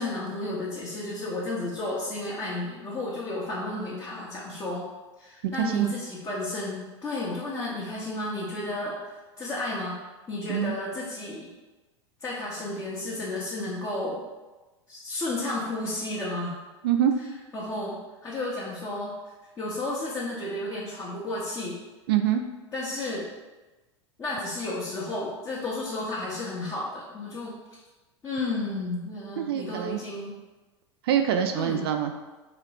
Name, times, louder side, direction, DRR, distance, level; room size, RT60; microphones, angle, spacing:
voice 1, 0.0-4.9 5.2-10.0 10.3-11.5 12.2-14.2 14.9-16.5 17.5-19.2 19.6-21.8 22.7-23.3 24.2-27.6 28.2-30.4 31.5-31.9, left 2 dB, 20° left, -7 dB, 1.0 m, -32 dB
voice 2, 5.4-5.9 10.5-10.7 16.8-17.1 22.1-22.4 29.4-30.0 31.0-32.1, right 10 dB, 55° right, 6 dB, 0.4 m, -25 dB
3.7 x 3.0 x 4.7 m, 1.1 s
figure-of-eight pair, 85°, 15 cm